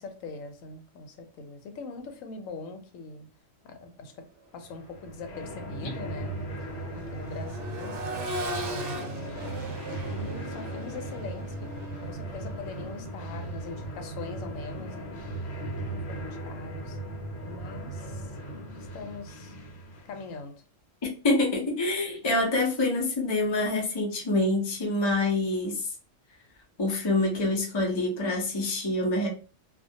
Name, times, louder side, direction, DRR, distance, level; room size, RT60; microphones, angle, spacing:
voice 1, 0.0-3.3 3.6-4.3 4.5-8.0 8.6-11.7 12.0-15.2 15.8-17.0 17.4-18.3 18.7-19.5 20.0-20.5, left 3 dB, 90° left, 6 dB, 1.0 m, -42 dB
Accelerating revving vroom, 4.6-4.8 5.2-15.1 16.8-16.9, right 1 dB, 70° right, 0.9 m, -40 dB
sound 1, 4.7-20.4, right 1 dB, 65° left, 0.8 m, -38 dB
voice 2, 21.2-25.9 26.8-29.3, left 2 dB, 40° left, -1 dB, 0.4 m, -26 dB
2.3 x 2.1 x 2.6 m, 0.36 s
omnidirectional pair, 1.3 m